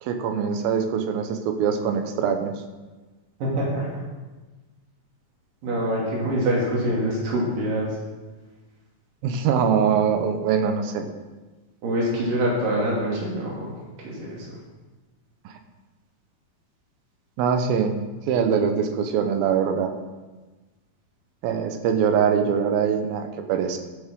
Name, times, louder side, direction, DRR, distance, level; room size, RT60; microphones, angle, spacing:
voice 1, 0.0-2.5 9.2-11.1 15.5-15.6 17.4-17.9 18.3-19.9 21.4-23.8, right 7 dB, 85° right, 6 dB, 2.7 m, -23 dB
voice 2, 3.4-4.0 5.6-8.0 11.8-13.7 14.0-14.6, right 1 dB, 65° right, -4 dB, 4.2 m, -25 dB
14.0 x 8.3 x 3.7 m, 1.2 s
omnidirectional pair, 4.2 m